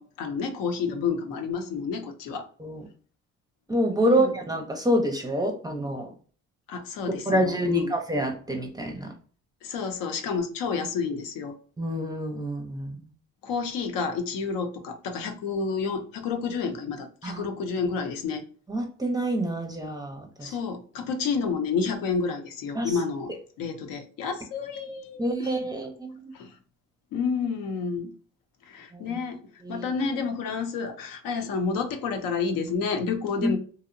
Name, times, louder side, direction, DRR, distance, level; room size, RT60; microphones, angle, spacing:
voice 1, 0.0-2.4 3.9-4.3 6.7-8.0 9.6-11.5 13.4-18.4 20.4-23.3 23.6-25.5 26.3-26.5 27.1-28.1 28.7-29.4 29.7-33.6, left 5 dB, 80° left, 6 dB, 0.6 m, -30 dB
voice 2, 3.7-6.1 7.1-9.1 11.8-13.0 17.2-17.5 18.7-20.5 22.7-22.9 25.2-26.3 28.9-29.2 29.6-29.9 33.4-33.5, right 1 dB, 10° right, 3 dB, 0.5 m, -27 dB
2.7 x 2.0 x 2.4 m, 0.42 s
cardioid pair, 95°, 34 cm